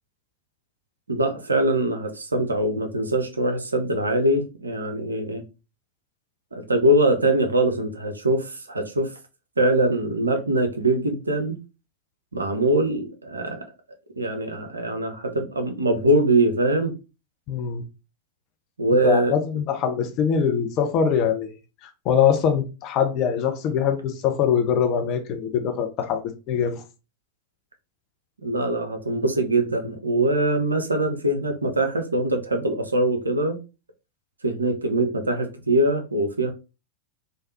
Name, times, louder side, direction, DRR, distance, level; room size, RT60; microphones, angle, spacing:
voice 1, 1.1-5.4 6.5-9.1 9.6-11.6 12.3-13.6 14.2-16.9 18.8-19.3 28.4-33.6 34.4-36.5, right 1 dB, 80° right, 0.5 m, -22 dB
voice 2, 17.5-17.8 19.0-21.5 22.1-26.2 26.5-26.8, left 7 dB, 40° left, 0.5 m, -23 dB
3.3 x 2.2 x 2.7 m
figure-of-eight pair, 90°, 0 cm